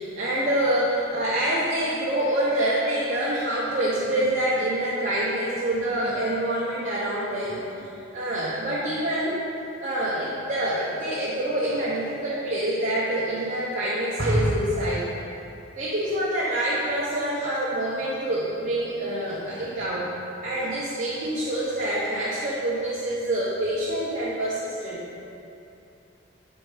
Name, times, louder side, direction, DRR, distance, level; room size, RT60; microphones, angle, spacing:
voice 1, 0.0-9.3 9.8-15.1 15.7-20.1 20.4-25.0, right 1 dB, 40° right, -7 dB, 0.7 m, -26 dB
7.8 x 2.7 x 4.9 m, 2.7 s
head